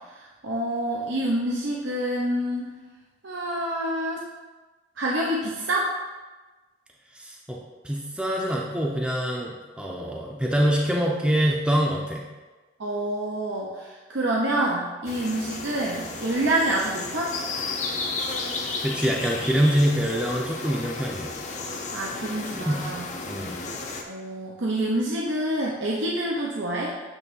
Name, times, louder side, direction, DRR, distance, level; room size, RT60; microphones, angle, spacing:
voice 1, 0.1-2.7 3.2-4.2 5.0-5.9 12.8-17.3 21.9-23.1 24.0-26.9, right 1 dB, 80° right, -4 dB, 0.8 m, -27 dB
voice 2, 7.1-7.6 7.8-12.3 18.8-21.3 22.6-22.8 23.3-23.5, equal, 5° right, -2 dB, 0.6 m, -25 dB
sound 1, 15.0-24.0, left 3 dB, 40° left, 0.6 m, -33 dB
8.4 x 3.2 x 5.4 m, 1.3 s
head